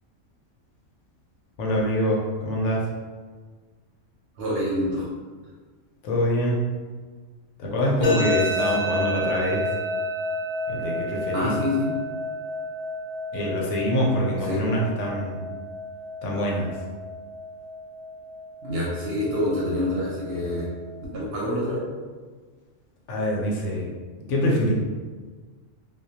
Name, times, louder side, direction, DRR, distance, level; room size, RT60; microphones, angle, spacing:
voice 1, 1.6-2.9 6.0-6.6 7.6-9.7 10.7-11.5 13.3-15.5 16.2-16.8 23.1-23.9 24.3-24.7, equal, 75° left, -2 dB, 0.9 m, -25 dB
voice 2, 4.4-5.1 8.0-8.3 11.3-11.9 14.4-14.6 18.6-20.7 21.1-21.8, left 1 dB, 65° right, -5 dB, 0.7 m, -26 dB
sound 1, 8.0-21.0, left 1 dB, 35° left, 0.6 m, -31 dB
2.2 x 2.1 x 2.7 m, 1.4 s
omnidirectional pair, 1.3 m